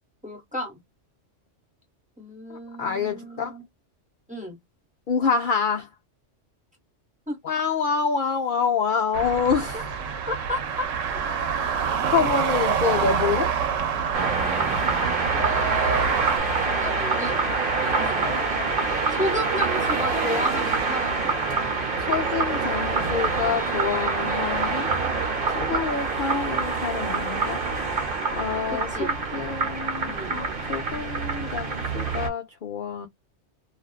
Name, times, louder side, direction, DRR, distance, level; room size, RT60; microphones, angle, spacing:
voice 1, 0.2-0.8 2.2-3.6 4.3-4.6 7.3-7.4 9.7-9.8 10.3-11.2 14.5-14.7 15.3-16.1 16.7-17.4 17.8-18.3 19.1-21.3 28.7-29.2 30.0-30.4, equal, 5° right, 0.9 m, -32 dB
voice 2, 2.8-3.6 5.1-5.9 7.4-9.9 12.1-13.5 22.1-24.9 25.5-27.6 28.3-33.1, left 6 dB, 55° left, 0.6 m, -27 dB
sound 1, 9.1-16.4, right 7 dB, 90° right, 0.9 m, -27 dB
sound 2, 14.1-32.3, right 4 dB, 50° right, 1.0 m, -26 dB
2.5 x 2.4 x 2.3 m
omnidirectional pair, 1.3 m